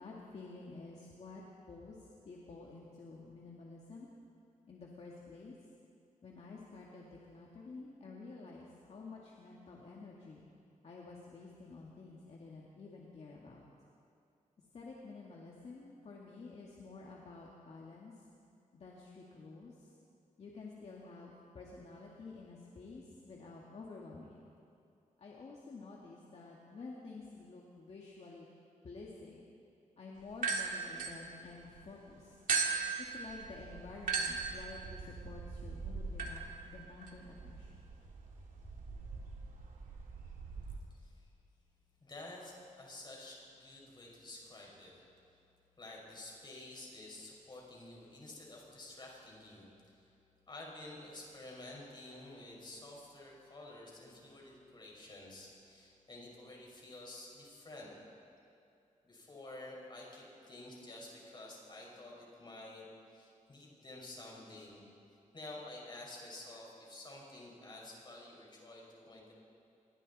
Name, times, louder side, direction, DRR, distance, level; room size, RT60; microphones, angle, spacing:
voice 1, 0.0-1.4 1.7-2.0 2.3-4.1 4.7-5.5 6.2-10.4 10.8-13.6 14.7-18.2 18.7-19.9 20.4-24.4 25.2-28.5 28.8-29.4 30.0-32.4 33.0-37.8, left 3 dB, 50° left, -3 dB, 2.2 m, -50 dB
sound 1, 30.3-31.8 32.5-40.8, right 5 dB, 80° right, 2.7 m, -39 dB
voice 2, 40.9-41.3 42.0-45.0 45.8-50.1 50.5-57.9 59.0-64.9 65.3-69.3, left 2 dB, 35° left, -2 dB, 5.5 m, -50 dB
28.0 x 22.5 x 4.3 m, 2.6 s
wide cardioid pair, 150°, 14 cm